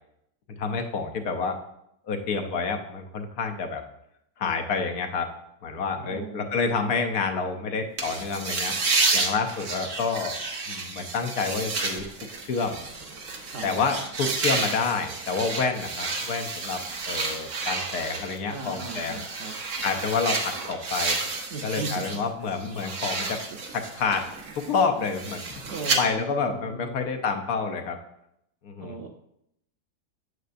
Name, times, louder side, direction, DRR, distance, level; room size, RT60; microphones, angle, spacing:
voice 1, 0.6-1.6 2.1-3.8 4.4-5.3 5.6-8.7 9.1-10.4 10.7-12.1 12.5-12.8 13.6-19.2 19.8-21.2 21.6-23.4 23.7-24.3 24.6-25.4 26.0-28.0 28.6-29.0, left 5 dB, 65° left, 4 dB, 1.2 m, -28 dB
voice 2, 6.0-6.9 13.4-13.7 18.5-19.5 21.5-22.2 23.5-23.6 25.7-27.1 28.8-29.1, right 3 dB, 80° right, 3 dB, 0.5 m, -38 dB
sound 1, 8.0-22.2 22.5-26.0, right 3 dB, 50° right, 1.1 m, -31 dB
8.0 x 7.5 x 2.5 m, 0.77 s
omnidirectional pair, 1.9 m